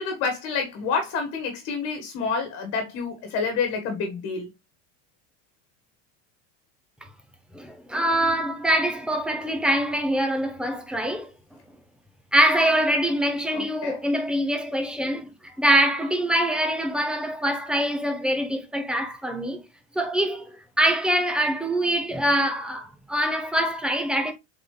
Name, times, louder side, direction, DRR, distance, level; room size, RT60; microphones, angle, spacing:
voice 1, 0.0-4.5 13.5-14.0, left 5 dB, 40° left, 1.6 m, -28 dB
voice 2, 7.5-11.3 12.3-19.6 19.9-24.3, right 1 dB, ahead, 0.7 m, -24 dB
7.2 x 4.0 x 3.3 m
supercardioid pair, 160°, 37 cm